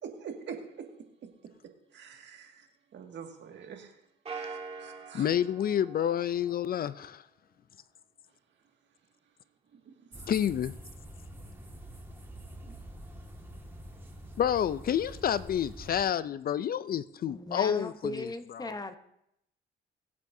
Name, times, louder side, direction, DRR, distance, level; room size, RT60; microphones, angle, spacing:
voice 1, 0.0-0.9 1.2-1.3 1.9-2.7 2.9-4.0 4.4-5.4 9.7-10.3 12.6-12.8, right 6 dB, 65° right, 2.0 m, -45 dB
sound 1, 4.2-7.0, right 4 dB, 30° right, 1.7 m, -44 dB
voice 2, 5.1-7.2 10.3-10.7 14.4-18.3 18.6-18.7, left 9 dB, 50° left, 0.4 m, -29 dB
sound 2, 10.1-16.0, right 1 dB, 10° right, 1.8 m, -46 dB
voice 3, 17.3-19.0, left 2 dB, 20° left, 0.9 m, -38 dB
23.0 x 8.5 x 2.7 m
cardioid pair, 90°, 20 cm